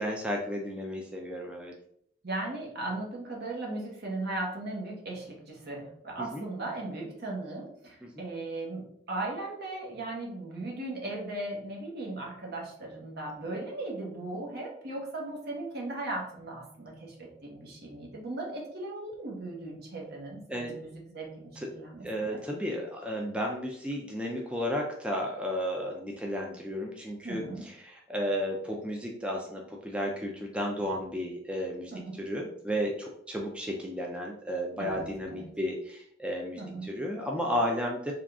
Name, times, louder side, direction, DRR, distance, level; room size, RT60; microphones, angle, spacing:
voice 1, 0.0-1.7 6.2-6.4 8.0-8.2 20.5-20.7 21.6-21.7 22.0-38.1, equal, 5° right, 0 dB, 0.3 m, -33 dB
voice 2, 2.2-22.4 27.2-27.7 30.7-30.8 31.9-32.2 34.7-35.4 36.6-36.9, right 2 dB, 55° right, -1 dB, 1.1 m, -37 dB
3.6 x 2.3 x 3.5 m, 0.68 s
head